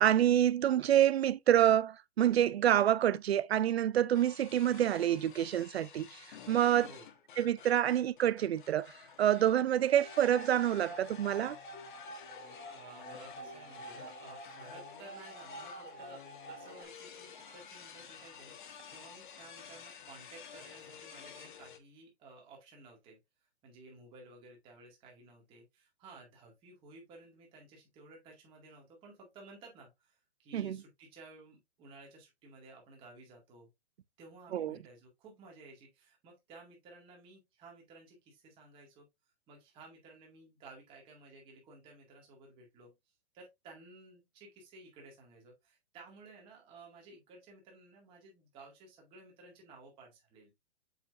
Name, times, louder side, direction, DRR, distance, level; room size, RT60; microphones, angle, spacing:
voice 1, 0.0-6.1 6.5-6.9 7.4-8.9 9.2-11.6 30.5-30.8 34.5-34.8, right 11 dB, 65° right, 0.6 m, -27 dB
sound 1, 4.1-21.8, left 8 dB, 45° left, 1.3 m, -51 dB
voice 2, 6.8-7.1 12.7-23.2 23.6-33.7 34.2-39.1 39.5-42.9 43.3-50.5, right 3 dB, 15° right, 2.1 m, -55 dB
sound 2, 9.9-16.8, right 2 dB, 10° left, 1.6 m, -49 dB
7.5 x 5.2 x 2.5 m
hypercardioid pair, 170°, 34 cm